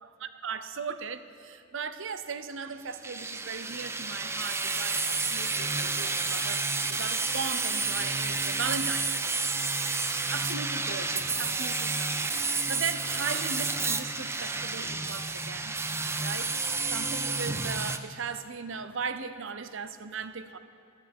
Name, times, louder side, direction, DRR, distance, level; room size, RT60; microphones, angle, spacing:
voice 1, 0.2-6.6 6.9-9.3 10.3-12.3 12.7-15.7 16.2-16.5 16.8-20.6, right 5 dB, 65° right, 11 dB, 0.7 m, -37 dB
sound 1, 3.0-18.0, right 3 dB, 10° right, 0.5 m, -30 dB
18.0 x 13.5 x 5.4 m, 2.5 s
head